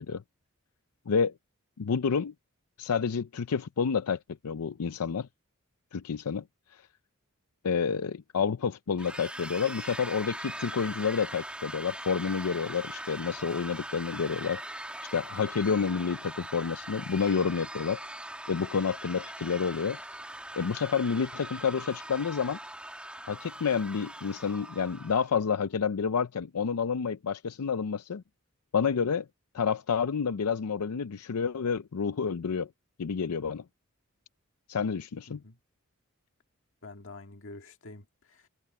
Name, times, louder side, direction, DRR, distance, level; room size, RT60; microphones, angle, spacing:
voice 1, 1.8-2.3 2.8-4.2 4.4-5.3 5.9-6.4 6.7-6.8 7.6-14.6 15.1-18.0 18.5-20.0 20.6-22.6 23.3-28.2 28.7-29.3 29.5-32.7 33.0-33.6 34.7-35.4, left 6 dB, 85° left, 0.5 m, -29 dB
sound 1, 9.0-25.3, right 1 dB, 5° right, 2.0 m, -41 dB
voice 2, 35.3-35.6 36.8-38.5, left 2 dB, 60° left, 1.9 m, -47 dB
head